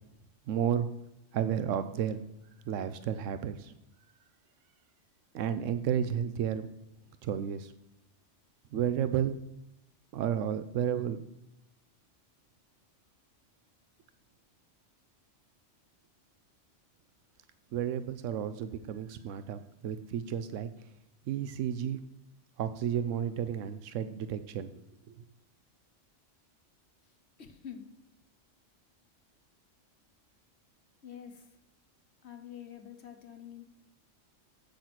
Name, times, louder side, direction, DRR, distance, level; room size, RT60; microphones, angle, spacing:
voice 1, 0.5-0.9 1.3-2.2 2.7-3.7 5.3-6.7 7.2-7.7 8.7-9.4 10.1-11.2 17.7-20.7 21.3-22.0 22.6-24.7 25.1-25.2, right 9 dB, 90° right, 12 dB, 1.0 m, -32 dB
voice 2, 27.0-27.9 31.0-31.5 32.2-33.7, left 9 dB, 65° left, 6 dB, 1.3 m, -47 dB
7.8 x 6.5 x 5.9 m, 0.86 s
omnidirectional pair, 1.3 m